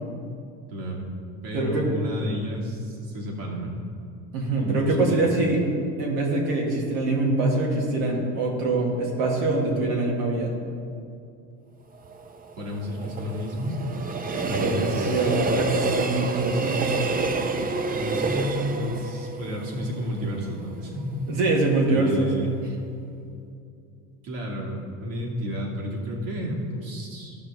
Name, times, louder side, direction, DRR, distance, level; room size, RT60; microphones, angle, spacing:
voice 1, 0.7-1.1 1.4-3.8 4.6-5.3 12.6-13.8 14.5-15.3 17.9-21.3 21.9-22.5 24.2-27.4, equal, 60° right, -2 dB, 2.5 m, -31 dB
voice 2, 1.5-1.8 4.3-5.6 6.0-10.6 14.3-17.0 21.3-22.3, right 2 dB, 80° right, -1 dB, 2.4 m, -24 dB
Train, 11.9-21.0 21.4-21.5, right 3 dB, 25° right, 0.6 m, -29 dB
15.0 x 6.2 x 3.7 m, 2.5 s
supercardioid pair, 90°, 38 cm